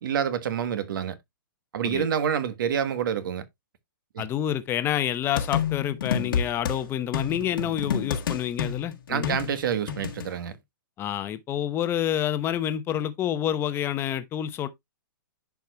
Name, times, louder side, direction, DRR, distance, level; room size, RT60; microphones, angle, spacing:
voice 1, 0.0-1.2 1.7-3.5 4.1-4.2 9.1-10.6, right 8 dB, 65° right, 1.3 m, -27 dB
voice 2, 4.2-9.4 11.0-14.7, left 11 dB, 20° left, 0.8 m, -28 dB
sound 1, 5.4-6.8 7.1-10.3, left 7 dB, 75° left, 1.6 m, -29 dB
11.0 x 4.7 x 2.2 m
hypercardioid pair, 145°, 12 cm